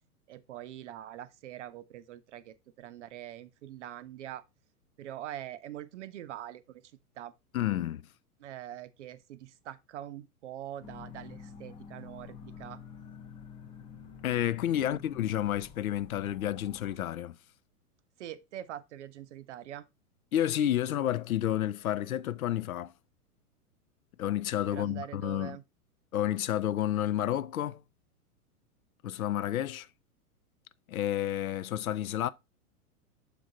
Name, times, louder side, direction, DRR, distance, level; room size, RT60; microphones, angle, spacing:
voice 1, 0.3-4.4 5.0-6.8 7.2-7.3 8.4-12.8 14.8-14.9 18.2-19.9 24.7-25.6, right 12 dB, 50° right, 0.6 m, -44 dB
voice 2, 7.5-8.0 14.2-17.4 20.3-22.9 24.2-25.6 26.1-27.8 29.0-29.9 30.9-32.3, left 12 dB, 65° left, 0.6 m, -30 dB
sound 1, 10.8-17.0, left 7 dB, 10° left, 0.6 m, -48 dB
6.6 x 4.0 x 3.8 m
figure-of-eight pair, 105°, 46 cm